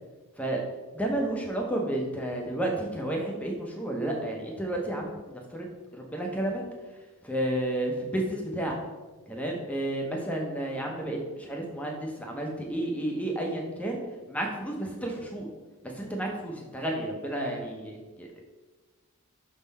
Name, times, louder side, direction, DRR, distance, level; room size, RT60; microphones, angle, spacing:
voice 1, 0.9-6.6 7.2-8.8 9.3-14.0 14.3-15.5 15.8-18.4, right 1 dB, 5° left, 0 dB, 0.8 m, -31 dB
5.9 x 3.8 x 4.1 m, 1.2 s
head